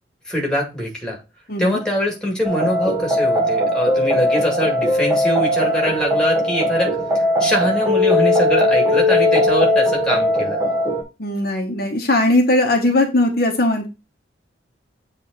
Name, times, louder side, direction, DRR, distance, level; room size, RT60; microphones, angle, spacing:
voice 1, 0.3-1.2 1.6-10.6, equal, 5° left, -1 dB, 2.0 m, -23 dB
sound 1, 2.4-11.0, left 1 dB, 20° right, 1.1 m, -19 dB
voice 2, 11.2-13.9, left 1 dB, 55° left, 2 dB, 1.0 m, -18 dB
7.6 x 3.5 x 3.9 m, 0.27 s
head